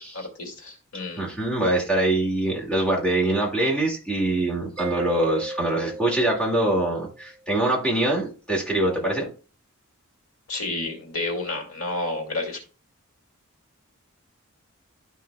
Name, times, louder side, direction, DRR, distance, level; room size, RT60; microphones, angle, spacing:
voice 1, 0.0-1.2 10.5-12.6, left 2 dB, 75° left, 2 dB, 2.4 m, -30 dB
voice 2, 1.2-9.3, right 1 dB, 5° left, -3 dB, 2.1 m, -24 dB
Mallet percussion, 4.8-7.3, right 1 dB, 30° right, 0.9 m, -35 dB
12.5 x 5.7 x 2.3 m, 0.36 s
head